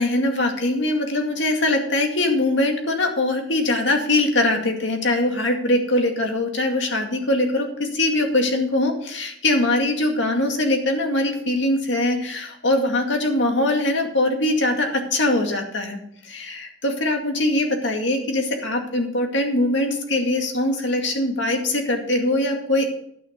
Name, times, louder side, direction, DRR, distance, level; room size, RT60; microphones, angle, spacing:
voice 1, 0.0-22.8, left 2 dB, 70° left, 3 dB, 2.2 m, -22 dB
11.5 x 9.5 x 5.2 m, 0.67 s
head